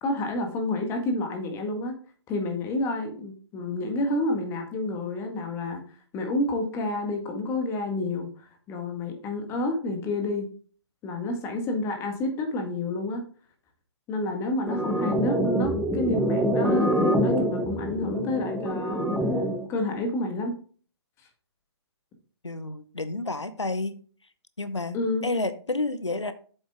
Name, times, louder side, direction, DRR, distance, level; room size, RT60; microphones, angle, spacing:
voice 1, 0.0-1.9 2.3-5.8 6.1-8.3 8.7-10.5 11.0-13.2 14.1-19.1 19.7-20.6 24.9-25.2, left 2 dB, 20° left, 4 dB, 1.7 m, -29 dB
sound 1, 14.7-19.7, equal, ahead, 0.6 m, -25 dB
voice 2, 22.4-24.0 24.6-25.0 25.2-26.3, left 2 dB, 85° left, 12 dB, 0.8 m, -30 dB
8.1 x 7.3 x 3.7 m, 0.42 s
figure-of-eight pair, 130°, 15 cm